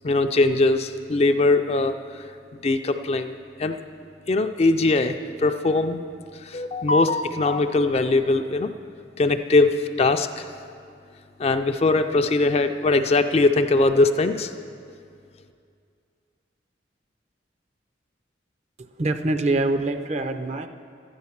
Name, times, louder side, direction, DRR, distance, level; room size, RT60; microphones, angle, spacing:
voice 1, 0.0-2.2 2.5-3.8 4.3-6.0 6.4-8.7 9.2-10.5 11.4-14.5, left 2 dB, 35° left, 8 dB, 0.4 m, -21 dB
voice 2, 18.8-20.7, right 2 dB, 35° right, 8 dB, 0.5 m, -25 dB
12.0 x 9.6 x 5.8 m, 2.4 s
head